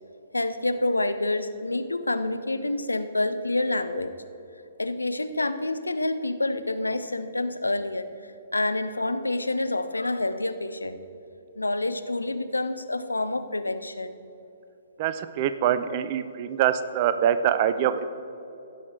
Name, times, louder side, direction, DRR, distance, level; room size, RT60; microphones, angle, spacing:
voice 1, 0.3-4.1 4.8-8.1 8.5-11.0 11.6-14.2, left 2 dB, 80° left, 11 dB, 0.6 m, -27 dB
voice 2, 15.0-18.1, right 9 dB, 35° right, 12 dB, 0.5 m, -24 dB
16.0 x 6.4 x 4.4 m, 2.8 s
figure-of-eight pair, 120°, 0 cm